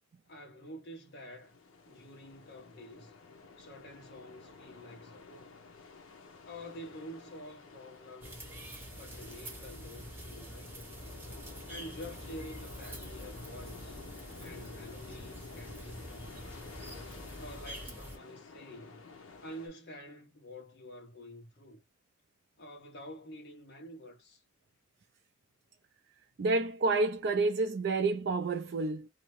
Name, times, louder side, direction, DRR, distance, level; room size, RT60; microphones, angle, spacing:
voice 1, 0.2-1.6 1.8-3.1 3.6-5.6 6.4-8.5 8.9-10.9 11.7-14.0 14.4-16.6 17.4-19.0 19.4-21.8 22.6-24.4, equal, 55° left, 1.1 m, -48 dB
sound 1, 1.1-19.7, left 4 dB, 85° left, 0.7 m, -51 dB
sound 2, 8.2-18.2, equal, 10° right, 0.9 m, -46 dB
voice 2, 26.4-29.1, right 3 dB, 55° right, 0.4 m, -29 dB
2.7 x 2.1 x 3.0 m
head